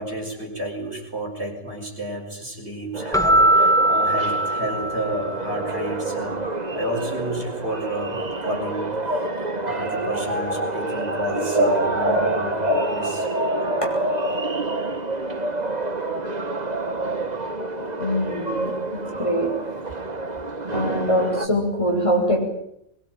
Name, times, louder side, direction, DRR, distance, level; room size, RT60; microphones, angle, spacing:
voice 1, 0.0-6.4 6.7-13.3, equal, 45° right, 1 dB, 5.8 m, -30 dB
sound 1, 2.9-21.5, right 2 dB, 30° right, 1.7 m, -28 dB
Keyboard (musical), 3.1-5.5, right 1 dB, ahead, 1.3 m, -20 dB
voice 2, 11.3-11.7 12.0-12.2 13.8-13.9 17.8-18.7 19.2-19.5 20.7-22.4, equal, 20° left, 0 dB, 7.0 m, -22 dB
23.5 x 22.0 x 9.2 m, 0.77 s
omnidirectional pair, 1.5 m